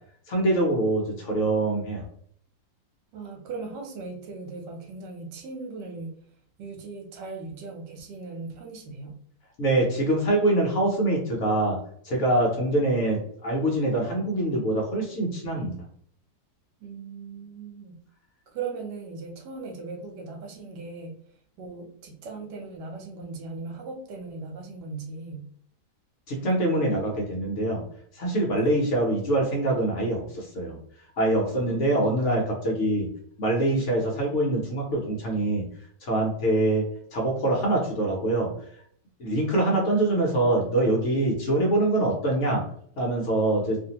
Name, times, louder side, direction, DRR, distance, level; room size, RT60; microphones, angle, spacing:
voice 1, 0.3-2.0 9.6-11.8 12.0-15.8 26.3-27.8 28.1-30.8 31.2-33.1 33.4-35.6 36.0-36.8 37.1-38.5 39.2-42.6 43.0-43.8, right 1 dB, 55° left, -1 dB, 0.9 m, -24 dB
voice 2, 3.1-6.1 6.6-9.2 16.8-18.0 18.5-21.2 21.6-25.4 28.6-28.8 31.5-32.1, right 4 dB, 80° right, 3 dB, 1.3 m, -38 dB
2.7 x 2.6 x 2.9 m, 0.63 s
omnidirectional pair, 1.8 m